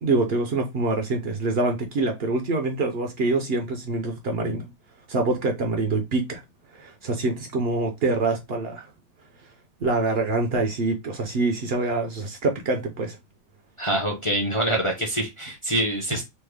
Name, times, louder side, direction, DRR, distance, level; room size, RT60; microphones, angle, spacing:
voice 1, 0.0-4.7 5.1-6.4 6.7-8.9 9.8-13.2, right 3 dB, 60° right, 0.8 m, -25 dB
voice 2, 13.8-16.2, right 1 dB, 30° left, 0.6 m, -25 dB
3.2 x 2.1 x 3.3 m
omnidirectional pair, 1.3 m